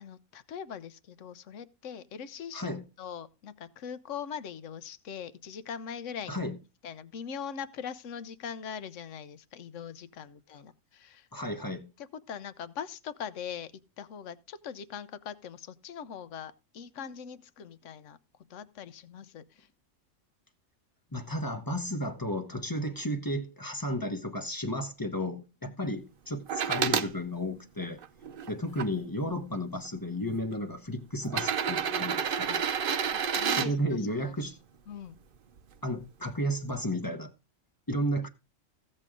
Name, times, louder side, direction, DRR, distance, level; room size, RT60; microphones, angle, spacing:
voice 1, 0.0-6.4 6.8-11.3 12.0-13.7 14.0-18.2 18.5-19.7 25.6-25.8 28.9-29.0 29.3-29.6 33.1-34.3 34.9-35.2, left 7 dB, 60° left, 1.1 m, -42 dB
voice 2, 2.5-2.9 6.3-6.6 11.3-11.9 21.1-28.0 28.5-32.6 33.5-34.6 35.8-37.3 37.9-38.3, equal, 15° left, 0.9 m, -33 dB
sound 1, 26.5-27.1 27.8-28.9 29.9-30.0 31.2-33.7 35.6-35.7, right 7 dB, 50° right, 0.7 m, -29 dB
15.5 x 7.6 x 3.7 m
omnidirectional pair, 1.5 m